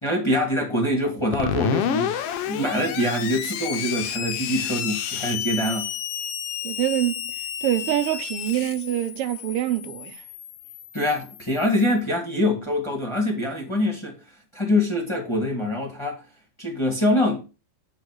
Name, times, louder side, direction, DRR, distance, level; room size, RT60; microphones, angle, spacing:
voice 1, 0.0-5.9 10.9-14.2 14.5-16.2 16.6-17.4, left 1 dB, 15° left, 1.2 m, -24 dB
Screech, 1.3-11.8, left 9 dB, 85° left, 1.3 m, -30 dB
voice 2, 6.6-7.3 7.6-10.2, right 13 dB, 80° right, 1.3 m, -25 dB
9.1 x 3.8 x 6.1 m
omnidirectional pair, 3.7 m